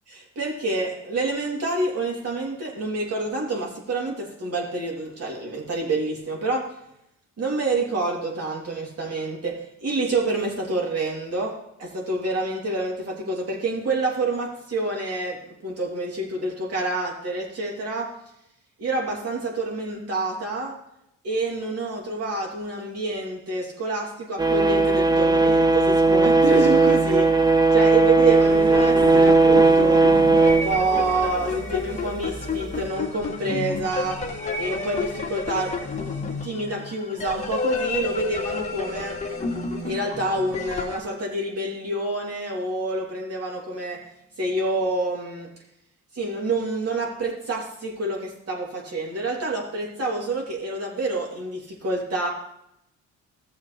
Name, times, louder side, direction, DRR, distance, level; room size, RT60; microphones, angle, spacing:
voice 1, 0.1-6.7 7.4-18.1 18.8-20.8 21.2-27.3 27.7-30.1 30.4-34.3 34.6-39.2 39.8-44.0 44.4-45.5 46.1-52.3, right 2 dB, 55° right, -1 dB, 3.1 m, -28 dB
sound 1, 24.4-31.5 32.7-32.8, right 3 dB, 15° right, 0.7 m, -17 dB
sound 2, 28.2-41.0, left 4 dB, 25° left, 1.8 m, -30 dB
15.0 x 7.0 x 3.3 m, 0.78 s
cardioid pair, 90°, 30 cm